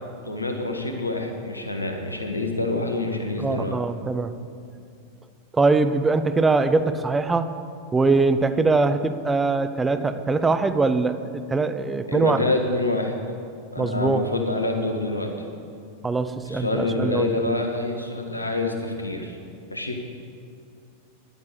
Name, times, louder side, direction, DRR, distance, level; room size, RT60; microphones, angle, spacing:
voice 1, 0.2-3.8 12.1-13.1 13.7-15.3 16.4-19.4 19.7-20.0, left 2 dB, 85° left, 4 dB, 1.4 m, -26 dB
voice 2, 3.4-4.4 5.5-7.5 7.9-11.2 11.5-12.4 13.8-14.3 16.0-17.3, right 3 dB, 15° right, 10 dB, 0.7 m, -22 dB
11.0 x 9.2 x 8.3 m, 2.4 s
figure-of-eight pair, 90°, 0 cm